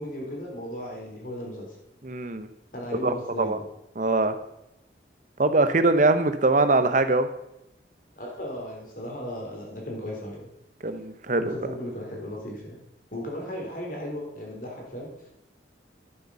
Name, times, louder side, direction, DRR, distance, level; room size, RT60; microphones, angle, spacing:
voice 1, 0.0-1.7 2.7-3.6 8.1-10.5 11.4-12.8 13.1-15.3, left 1 dB, 50° left, -1 dB, 3.5 m, -36 dB
voice 2, 2.0-2.5 3.0-3.6 4.0-4.3 5.4-7.3 10.8-11.5, right 2 dB, 45° right, 10 dB, 0.9 m, -22 dB
11.5 x 8.0 x 5.5 m, 0.84 s
head